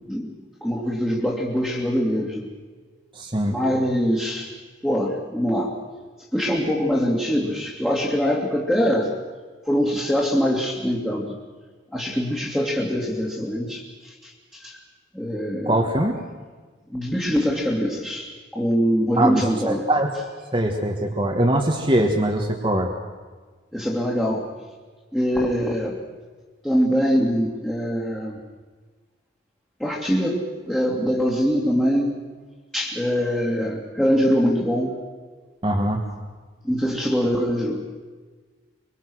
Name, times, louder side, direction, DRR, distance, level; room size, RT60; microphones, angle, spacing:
voice 1, 0.6-2.5 3.5-4.5 4.8-5.7 6.3-9.1 9.7-11.4 11.9-14.8 15.1-15.8 16.9-19.9 23.7-24.5 25.1-26.0 26.6-28.4 29.8-32.2 32.7-34.9 36.6-37.8, equal, 5° left, -5 dB, 2.6 m, -23 dB
voice 2, 3.1-3.6 15.6-16.2 19.2-20.1 20.5-22.9 35.6-36.0, right 1 dB, 25° right, 2 dB, 1.7 m, -22 dB
25.5 x 23.5 x 6.4 m, 1.4 s
head